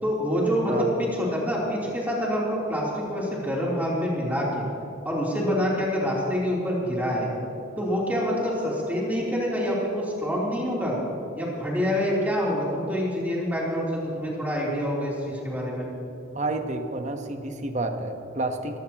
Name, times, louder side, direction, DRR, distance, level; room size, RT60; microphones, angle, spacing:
voice 1, 0.0-0.7 1.0-4.6 5.0-7.3 7.8-11.0 11.3-15.9, equal, 10° right, -6 dB, 3.2 m, -26 dB
voice 2, 16.3-18.8, right 2 dB, 35° right, 5 dB, 1.0 m, -30 dB
21.0 x 16.0 x 2.9 m, 2.9 s
head